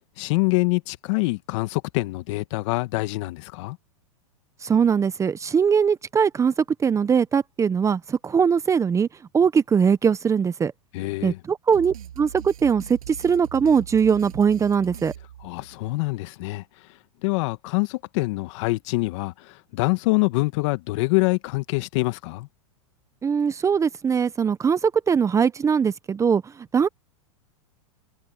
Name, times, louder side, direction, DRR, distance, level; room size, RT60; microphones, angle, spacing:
voice 1, 0.2-3.8 10.9-11.4 15.4-16.6 17.2-22.5, left 24 dB, 55° left, 1.9 m, -25 dB
voice 2, 4.6-6.5 6.8-9.1 9.3-10.7 11.2-15.1 23.2-26.4 26.7-26.9, right 6 dB, 15° right, 1.0 m, -21 dB
sound 1, 11.7-16.0, right 10 dB, 85° right, 7.1 m, -40 dB
hypercardioid pair, 120°, 18 cm